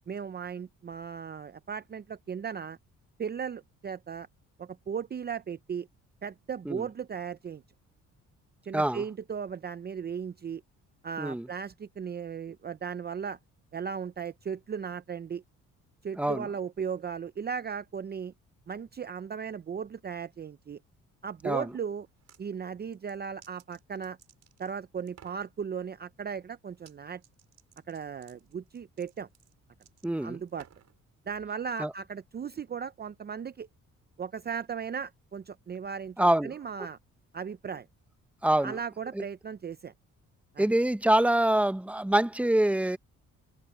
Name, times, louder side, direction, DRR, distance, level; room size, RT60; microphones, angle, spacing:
voice 1, 0.1-2.8 3.2-4.3 4.6-5.9 6.2-7.6 8.7-10.6 11.0-13.4 13.7-15.4 16.0-18.3 18.7-20.8 21.2-22.1 22.4-24.2 24.6-27.2 27.9-29.3 30.2-30.7 31.3-33.7 34.2-37.0 37.3-37.9 38.6-39.9 40.5-40.7, right 7 dB, 35° right, 0.6 m, -36 dB
voice 2, 8.7-9.0 11.2-11.5 16.2-16.5 21.4-21.7 30.0-30.4 31.8-31.9 36.2-36.5 38.4-38.8 39.1-39.2 40.6-43.0, right 1 dB, 5° right, 1.1 m, -25 dB
sound 1, 22.0-22.4 22.9-24.7 25.1-25.5 26.7-27.0 27.2-31.0, right 9 dB, 60° right, 6.8 m, -57 dB
cardioid pair, 90°, 30 cm